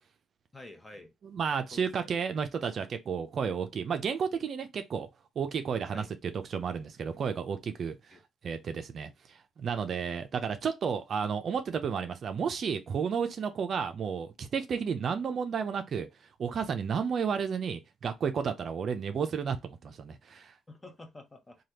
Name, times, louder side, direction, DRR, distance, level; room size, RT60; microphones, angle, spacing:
voice 1, 0.5-1.1 1.7-1.9 5.9-6.1 8.1-8.2 20.7-21.6, left 2 dB, 20° left, 0.8 m, -49 dB
voice 2, 1.2-5.1 5.4-6.0 6.5-7.9 8.4-16.1 16.4-20.5, right 6 dB, 55° right, 0.5 m, -32 dB
3.3 x 2.3 x 2.8 m
cardioid pair, 90°, 0 cm